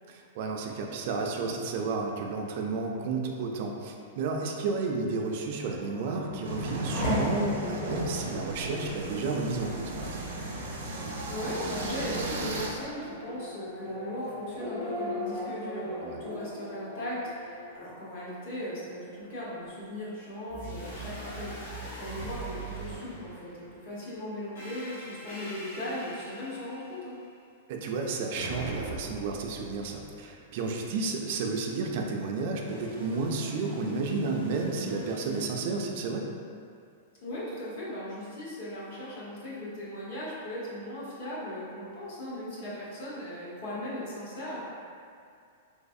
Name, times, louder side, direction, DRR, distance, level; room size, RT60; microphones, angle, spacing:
voice 1, 0.1-10.2 16.0-16.2 27.7-36.3, right 3 dB, 50° right, 1 dB, 0.3 m, -32 dB
Race car auto racing / Accelerating revving vroom, 5.5-18.7 19.1-19.8, left 1 dB, 30° left, 0.9 m, -38 dB
sound 1, 6.4-12.7, right 1 dB, 85° right, 0.6 m, -36 dB
voice 2, 11.0-27.2 37.2-44.6, left 1 dB, 55° left, -7 dB, 1.1 m, -38 dB
sound 2, 20.5-23.8 24.6-27.1 28.4-30.4 32.6-35.5, right 1 dB, 70° left, 1.3 m, -42 dB
3.3 x 3.1 x 2.6 m, 2.3 s
supercardioid pair, 160°, 0 cm